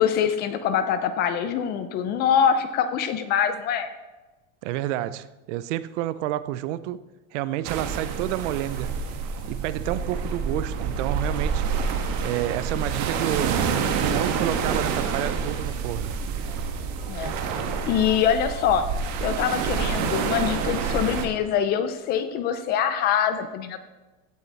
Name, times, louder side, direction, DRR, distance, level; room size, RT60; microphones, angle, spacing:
voice 1, 0.0-3.9 17.1-17.3 17.9-18.9 19.2-23.8, left 8 dB, 25° left, 0.4 m, -24 dB
voice 2, 4.6-7.0 7.3-8.9 9.5-11.6 12.2-13.7 14.0-16.1, right 14 dB, 60° right, 0.6 m, -29 dB
sound 1, 7.6-21.3, right 6 dB, 40° right, 1.3 m, -28 dB
16.0 x 7.4 x 4.1 m
supercardioid pair, 160°, 41 cm